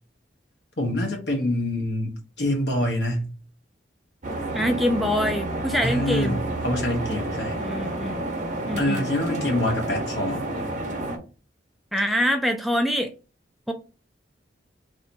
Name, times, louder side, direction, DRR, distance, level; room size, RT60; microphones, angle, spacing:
voice 1, 0.8-3.3 5.8-7.6 8.8-10.5, left 1 dB, 65° left, 1.2 m, -26 dB
sound 1, 4.2-11.2, right 2 dB, 45° right, 0.9 m, -30 dB
voice 2, 4.5-6.4 7.6-8.2 8.6-9.1 11.9-13.1 13.7-13.8, equal, ahead, 0.3 m, -25 dB
3.2 x 2.8 x 4.1 m
head